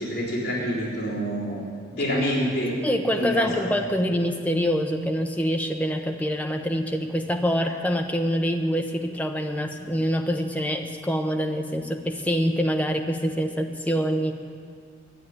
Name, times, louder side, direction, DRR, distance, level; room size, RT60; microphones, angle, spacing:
voice 1, 0.0-1.6 1.9-2.7 3.1-3.5, equal, 55° left, -10 dB, 4.1 m, -27 dB
voice 2, 2.8-14.3, equal, 10° left, 3 dB, 0.8 m, -25 dB
11.0 x 8.2 x 9.8 m, 2.2 s
head